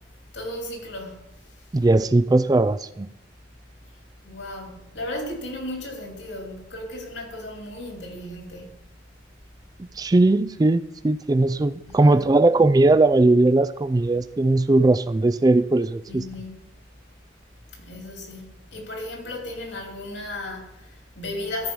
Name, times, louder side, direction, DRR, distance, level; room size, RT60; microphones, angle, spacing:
voice 1, 0.3-1.2 4.2-8.8 11.8-12.3 16.1-16.6 17.8-21.7, left 1 dB, 75° left, 2.7 m, -35 dB
voice 2, 1.7-3.1 10.0-16.2, right 2 dB, 20° right, 0.3 m, -19 dB
13.5 x 5.4 x 4.7 m
head